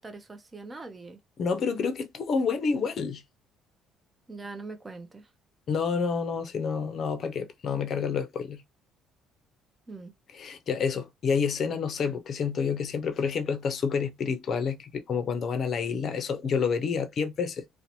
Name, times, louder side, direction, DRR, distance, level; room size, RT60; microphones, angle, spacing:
voice 1, 0.0-1.2 4.3-5.3 9.9-10.1, right 3 dB, 20° right, 0.5 m, -42 dB
voice 2, 1.4-3.2 5.7-8.6 10.4-17.6, left 5 dB, 50° left, 0.5 m, -29 dB
2.6 x 2.1 x 2.9 m
cardioid pair, 105°, 0 cm